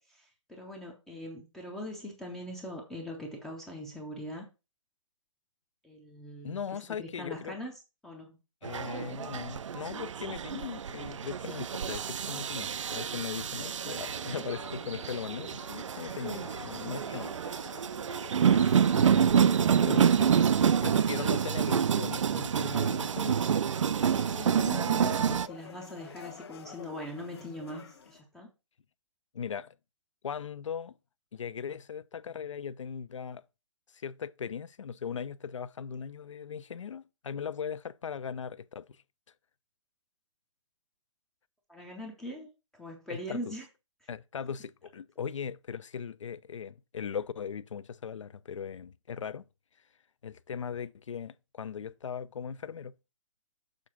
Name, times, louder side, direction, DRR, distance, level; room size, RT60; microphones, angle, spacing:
voice 1, 0.1-4.5 5.8-7.7 8.0-8.4 24.3-28.5 41.7-43.7, equal, ahead, 0.5 m, -42 dB
voice 2, 6.4-7.6 8.6-17.3 18.9-20.4 20.8-23.4 29.3-29.7 30.2-31.0 31.3-33.4 33.9-39.0 43.1-43.5 44.1-49.4 50.2-52.9, left 7 dB, 75° left, 0.5 m, -39 dB
sound 1, 8.6-25.5, right 7 dB, 75° right, 0.4 m, -28 dB
sound 2, 13.5-28.2, left 7 dB, 55° left, 1.0 m, -50 dB
6.6 x 3.6 x 5.8 m
hypercardioid pair, 160°, 16 cm